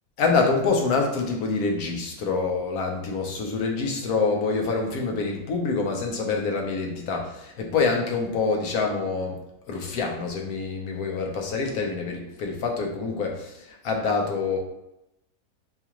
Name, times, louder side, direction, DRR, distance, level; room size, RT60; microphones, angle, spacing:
voice 1, 0.2-9.4 9.7-13.6 13.8-14.6, left 4 dB, 85° left, 1 dB, 1.2 m, -26 dB
4.6 x 2.4 x 2.9 m, 0.87 s
omnidirectional pair, 1.5 m